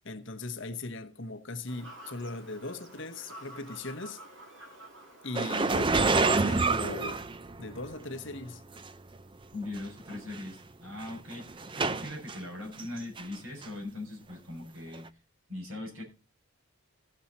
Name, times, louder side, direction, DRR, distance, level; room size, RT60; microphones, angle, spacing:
voice 1, 0.0-4.2 5.2-7.3 7.6-8.6, left 2 dB, 55° left, 1.1 m, -39 dB
Fowl / Bird vocalization bird call bird song, 1.7-6.7, right 1 dB, 55° right, 2.8 m, -50 dB
sound 1, 5.3-7.9 8.8-8.9 9.8-9.9 10.1-10.4 11.0-12.4 12.8-13.3 13.6-13.7 14.9-15.0, right 3 dB, 20° right, 0.5 m, -28 dB
voice 2, 9.5-15.1 15.5-16.0, left 2 dB, 75° right, 6.6 m, -40 dB
16.0 x 7.4 x 4.2 m
head